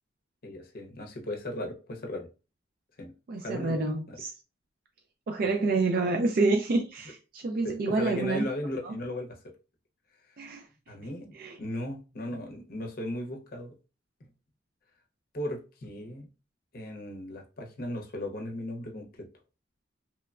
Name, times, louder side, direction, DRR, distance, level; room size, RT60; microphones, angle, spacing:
voice 1, 0.4-2.3 3.0-4.2 7.6-9.5 10.9-13.8 14.2-14.3 15.3-16.3 16.7-19.3, left 1 dB, 55° left, 0.7 m, -37 dB
voice 2, 3.3-4.3 5.3-8.4 8.8-8.9 10.4-10.6 11.3-11.6, right 3 dB, 50° right, 0.3 m, -28 dB
3.0 x 2.1 x 2.3 m
head